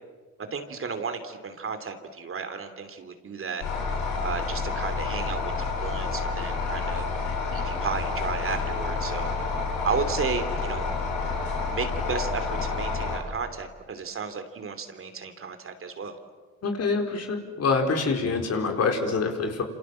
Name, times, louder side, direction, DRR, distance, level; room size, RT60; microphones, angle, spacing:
voice 1, 0.5-3.6 4.2-7.1 7.5-9.3 9.8-10.8 11.7-16.2, right 5 dB, 45° right, 8 dB, 3.0 m, -33 dB
sound 1, 3.6-13.2, left 4 dB, 85° left, 7.4 m, -29 dB
voice 2, 16.6-19.6, left 4 dB, 55° left, 4 dB, 4.7 m, -26 dB
28.0 x 27.5 x 7.6 m, 1.5 s
cardioid pair, 90°, 30 cm